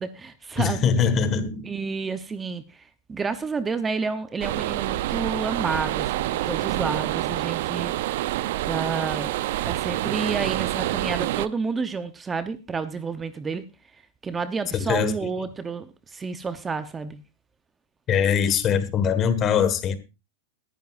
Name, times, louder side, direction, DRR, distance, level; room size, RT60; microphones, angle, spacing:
voice 1, 0.0-0.9 1.6-2.6 3.1-7.9 8.7-13.6 14.2-17.2, right 4 dB, 15° right, 0.8 m, -30 dB
voice 2, 0.6-1.6 14.7-15.1 18.1-20.0, left 7 dB, 30° left, 1.6 m, -22 dB
sound 1, 4.4-11.5, right 15 dB, 65° right, 0.6 m, -27 dB
20.5 x 10.5 x 2.5 m
hypercardioid pair, 125°, 0 cm